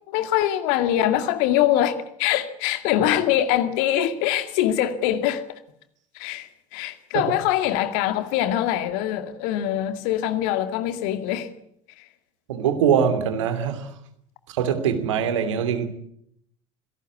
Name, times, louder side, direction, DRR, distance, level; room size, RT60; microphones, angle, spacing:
voice 1, 0.1-5.4 6.1-11.5 12.0-12.1, left 12 dB, 60° left, 2.2 m, -23 dB
voice 2, 12.5-13.9 14.5-15.9, right 8 dB, 70° right, 2.9 m, -23 dB
26.0 x 18.0 x 8.4 m
figure-of-eight pair, 65°, 16 cm